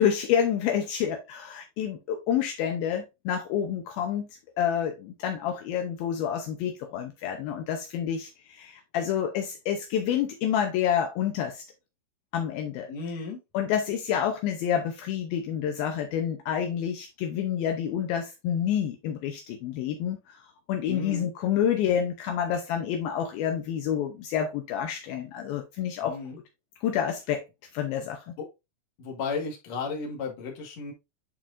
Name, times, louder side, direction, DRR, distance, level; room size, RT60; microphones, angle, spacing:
voice 1, 0.0-4.3 4.6-11.6 12.3-12.9 13.5-20.4 20.7-26.2 26.8-27.4 27.7-28.3, left 9 dB, 75° left, 2.5 m, -28 dB
voice 2, 12.9-13.4 20.8-21.3 26.0-26.4 28.4-28.5 29.0-30.9, left 4 dB, 55° left, 2.5 m, -34 dB
8.9 x 4.6 x 2.5 m
omnidirectional pair, 4.5 m